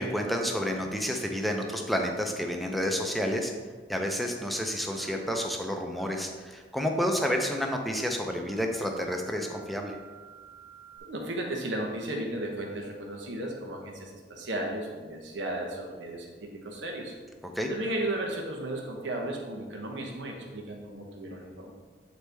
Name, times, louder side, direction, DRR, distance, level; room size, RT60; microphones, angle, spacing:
voice 1, 0.0-3.5 3.9-10.0 17.6-17.7, equal, ahead, 2 dB, 0.6 m, -30 dB
sound 1, 4.0-4.3 5.0-5.2 6.0-6.3 7.0-7.2 7.5-7.7 8.0-8.2 8.5-11.0, right 5 dB, 50° right, 1.4 m, -52 dB
voice 2, 11.0-17.1 17.7-21.7, right 1 dB, 85° right, 1 dB, 0.9 m, -35 dB
7.9 x 4.2 x 3.4 m, 1.4 s
head